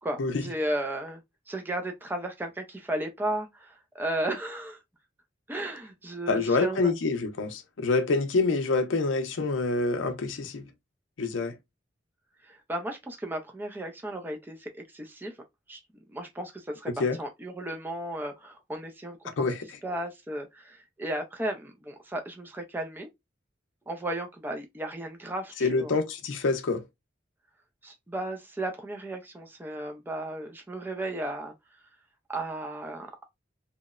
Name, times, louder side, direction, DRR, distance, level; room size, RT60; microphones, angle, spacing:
voice 1, 0.0-4.8 5.5-6.9 12.4-15.4 15.7-15.8 16.1-19.5 19.8-23.1 23.9-25.9 27.8-31.9 32.3-33.1, right 1 dB, 10° right, 0.4 m, -35 dB
voice 2, 6.3-10.7 11.2-11.5 17.0-17.2 19.4-19.6 25.6-26.8, left 3 dB, 85° left, 0.5 m, -26 dB
2.8 x 2.0 x 2.3 m
head